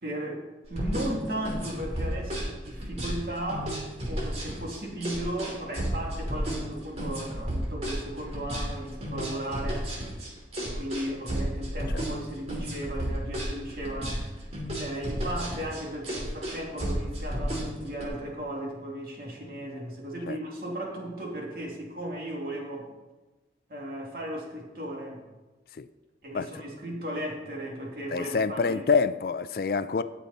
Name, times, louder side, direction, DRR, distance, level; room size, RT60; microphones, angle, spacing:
voice 1, 0.0-3.8 4.1-9.9 10.6-14.2 14.7-22.9 23.7-25.2 26.2-28.8, right 1 dB, 55° right, 2.6 m, -36 dB
sound 1, 0.6-18.0, equal, 35° right, 2.9 m, -32 dB
voice 2, 28.1-30.0, left 5 dB, 55° left, 0.4 m, -26 dB
17.5 x 7.0 x 4.2 m
head